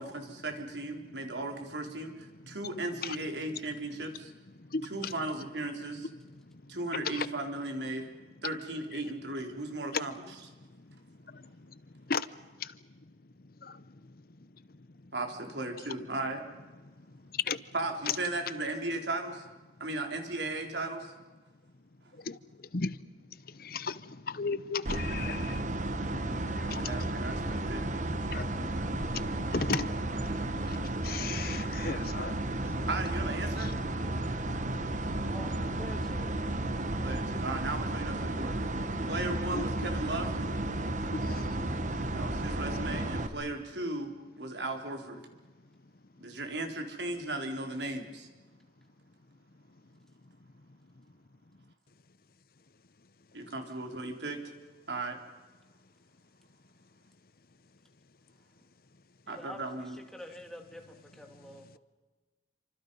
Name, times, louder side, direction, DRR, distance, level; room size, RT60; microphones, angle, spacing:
voice 1, 0.0-4.3 4.9-6.1 6.7-8.1 8.4-10.1 15.1-16.4 17.7-19.5 19.8-21.1 26.6-27.8 32.9-33.7 37.0-38.5 39.0-40.3 42.1-44.1 44.4-45.2 46.2-48.3 53.3-54.4 54.9-55.2 59.3-60.0, right 2 dB, 80° right, 4 dB, 3.9 m, -36 dB
voice 2, 2.3-2.8 3.0-3.2 3.5-3.6 4.1-5.2 6.0-7.3 8.9-9.1 9.9-10.1 10.6-13.7 14.5-15.1 16.8-17.7 18.1-18.2 22.1-26.2 26.4-27.5 28.1-29.9 30.7-32.4 32.6-32.7 33.6-33.7 39.5-39.9 41.1-42.2 45.7-45.8 46.2-46.3 49.7-49.8 50.5-51.0 61.3-61.8, left 5 dB, 55° left, 16 dB, 0.9 m, -38 dB
sound 1, 24.8-43.3, right 1 dB, 45° right, 1.6 m, -33 dB
voice 3, 35.3-36.3 59.3-61.8, left 1 dB, 5° left, 3 dB, 2.6 m, -47 dB
29.0 x 25.5 x 5.6 m, 1.2 s
head